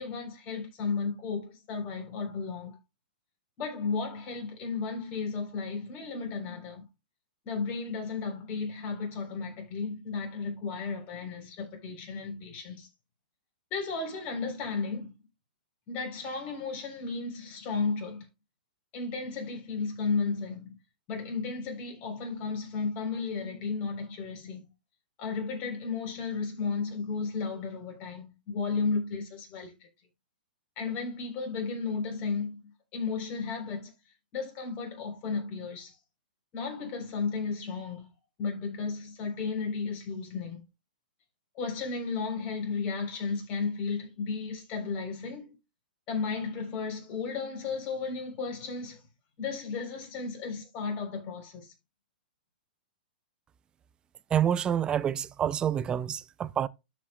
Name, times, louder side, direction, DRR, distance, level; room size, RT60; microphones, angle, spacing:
voice 1, 0.0-2.8 3.6-6.9 7.4-12.9 13.7-15.1 15.9-18.3 18.9-20.7 21.1-24.7 25.2-29.7 30.8-33.9 34.3-36.0 36.5-38.1 38.4-40.6 41.5-45.6 46.1-49.0 49.4-51.7, left 4 dB, 35° left, 3.8 m, -34 dB
voice 2, 54.3-56.7, right 9 dB, 20° right, 0.4 m, -27 dB
13.0 x 5.2 x 2.3 m
hypercardioid pair, 130°, 5 cm